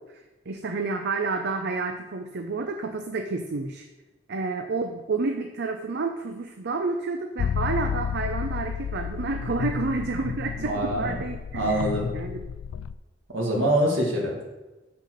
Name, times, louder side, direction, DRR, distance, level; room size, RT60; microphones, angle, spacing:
voice 1, 0.1-3.9 4.3-12.4, right 3 dB, 60° right, 5 dB, 0.6 m, -30 dB
sound 1, 7.4-12.9, left 7 dB, 90° left, 0.3 m, -31 dB
voice 2, 10.6-11.2 11.5-12.1 13.3-14.4, right 1 dB, 80° right, -2 dB, 2.1 m, -25 dB
6.7 x 5.6 x 6.4 m, 1.1 s
head